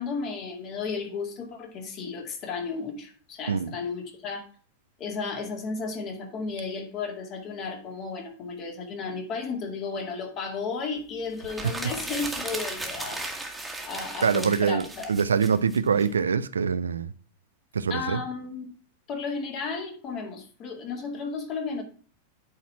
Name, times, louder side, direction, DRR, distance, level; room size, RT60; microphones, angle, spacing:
voice 1, 0.0-4.4 5.0-13.5 13.8-15.1 17.9-18.7 19.1-21.8, left 4 dB, 35° left, 2.2 m, -34 dB
sound 1, 11.4-16.1, right 2 dB, 5° right, 1.6 m, -36 dB
voice 2, 14.2-17.1 17.7-18.2, right 6 dB, 70° right, 0.4 m, -24 dB
8.7 x 4.2 x 5.8 m
figure-of-eight pair, 90°, 0 cm